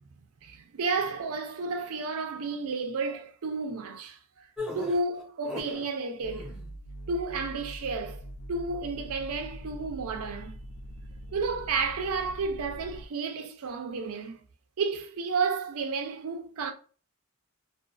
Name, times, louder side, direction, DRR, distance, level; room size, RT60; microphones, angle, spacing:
voice 1, 0.4-4.2 4.7-6.5 7.1-8.2 8.5-10.6 11.3-14.4 14.8-16.7, right 4 dB, 80° right, 0.5 m, -31 dB
sound 1, 4.6-5.9 6.2-6.7, left 2 dB, 5° right, 0.6 m, -38 dB
sound 2, 6.2-13.1, right 1 dB, 70° left, 0.4 m, -43 dB
2.4 x 2.3 x 2.4 m
head